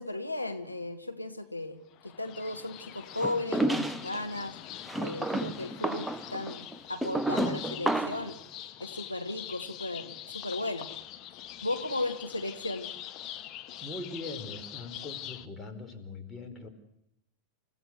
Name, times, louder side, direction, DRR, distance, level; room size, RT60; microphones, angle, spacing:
voice 1, 0.0-4.6 5.0-8.4 8.8-10.9 11.6-12.9, left 2 dB, 85° left, 6 dB, 1.6 m, -35 dB
sound 1, 1.9-15.5, left 12 dB, 35° left, 1.3 m, -44 dB
sound 2, 3.2-4.2 4.9-8.3, right 1 dB, 5° right, 0.8 m, -31 dB
voice 2, 13.8-16.7, left 2 dB, 15° left, 5 dB, 4.4 m, -41 dB
29.5 x 15.5 x 7.9 m, 0.83 s
figure-of-eight pair, 90°, 0 cm